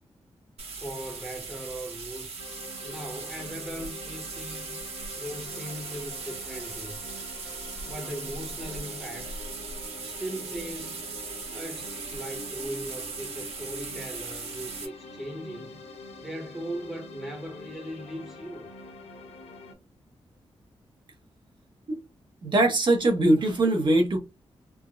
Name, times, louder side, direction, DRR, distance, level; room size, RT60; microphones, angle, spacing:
sound 1, 0.6-14.9, right 4 dB, 85° right, 1.0 m, -39 dB
voice 1, 0.8-2.5 2.8-4.8 5.2-7.0 7.8-9.4 10.0-11.0 11.5-15.8 16.2-18.7, right 1 dB, 5° right, 0.8 m, -39 dB
sound 2, 2.4-19.7, left 2 dB, 80° left, 0.7 m, -45 dB
voice 2, 22.4-24.2, right 1 dB, 50° right, 0.9 m, -22 dB
3.4 x 2.1 x 2.3 m
wide cardioid pair, 135°, 10 cm